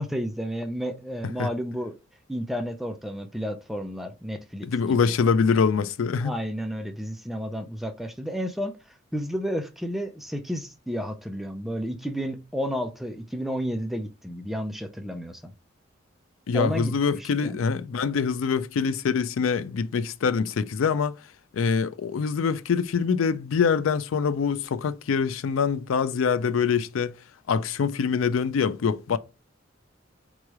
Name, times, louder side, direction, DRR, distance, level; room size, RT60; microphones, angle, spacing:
voice 1, 0.0-1.9 2.3-5.1 6.2-8.8 9.1-15.5 16.5-17.6, equal, ahead, 0.5 m, -32 dB
voice 2, 4.6-6.3 16.5-21.2 21.5-27.1 27.5-29.2, left 6 dB, 85° left, 0.4 m, -24 dB
3.6 x 3.2 x 4.7 m
head